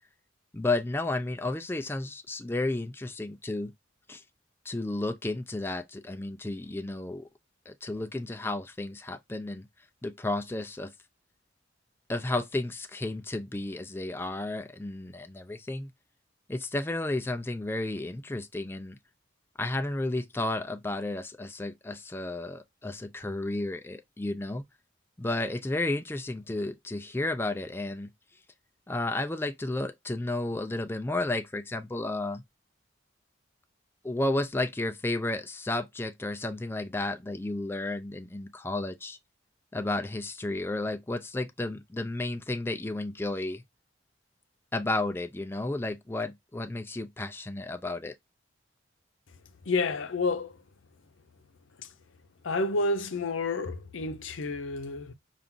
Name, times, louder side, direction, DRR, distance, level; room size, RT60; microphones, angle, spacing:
voice 1, 0.5-3.7 4.1-4.2 4.6-7.3 7.7-9.7 10.0-10.9 12.1-15.9 16.5-19.0 19.6-24.6 25.2-28.1 28.9-32.4 34.0-39.2 39.7-43.6 44.7-48.1, left 2 dB, 10° left, 0.4 m, -32 dB
voice 2, 49.7-50.6 51.8-51.9 52.4-55.1, left 3 dB, 85° left, 0.7 m, -30 dB
5.8 x 2.5 x 3.7 m
head